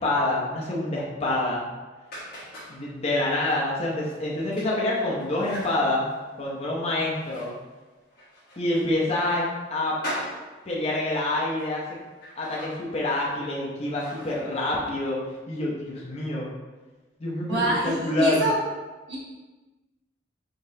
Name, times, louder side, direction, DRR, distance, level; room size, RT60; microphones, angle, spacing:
voice 1, 0.0-1.6 2.7-6.0 6.4-7.5 8.6-10.0 10.7-11.8 12.4-15.2 15.5-16.5 17.2-17.6 17.8-18.5, left 2 dB, 35° left, -4 dB, 0.6 m, -26 dB
sound 1, 2.1-15.1, equal, 55° left, 1.2 m, -42 dB
voice 2, 17.5-18.6 19.1-19.2, right 1 dB, 70° right, -7 dB, 1.4 m, -25 dB
3.8 x 3.7 x 2.6 m, 1.3 s
head